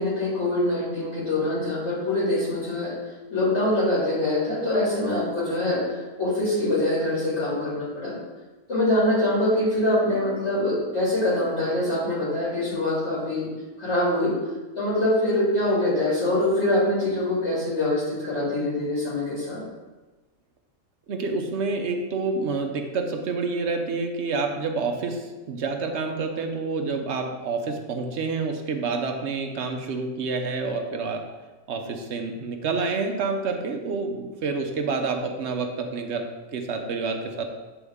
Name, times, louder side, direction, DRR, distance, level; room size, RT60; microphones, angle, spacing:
voice 1, 0.0-2.9 3.3-8.2 8.7-13.5 13.8-14.3 14.7-19.6, left 1 dB, 60° left, -9 dB, 2.8 m, -24 dB
voice 2, 21.1-31.2 31.7-36.2 36.5-37.4, right 4 dB, 60° right, 4 dB, 1.0 m, -28 dB
8.5 x 4.0 x 3.6 m, 1.2 s
omnidirectional pair, 1.4 m